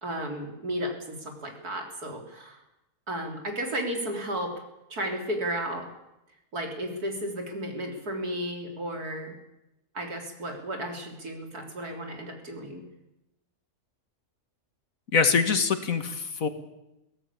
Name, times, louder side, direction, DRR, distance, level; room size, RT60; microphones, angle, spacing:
voice 1, 0.0-2.6 3.1-4.5 4.9-5.9 6.5-9.3 9.9-12.8, right 1 dB, 85° right, 3 dB, 4.2 m, -33 dB
voice 2, 15.1-16.5, left 5 dB, 65° left, 9 dB, 2.1 m, -24 dB
23.0 x 17.0 x 8.6 m, 0.91 s
omnidirectional pair, 1.6 m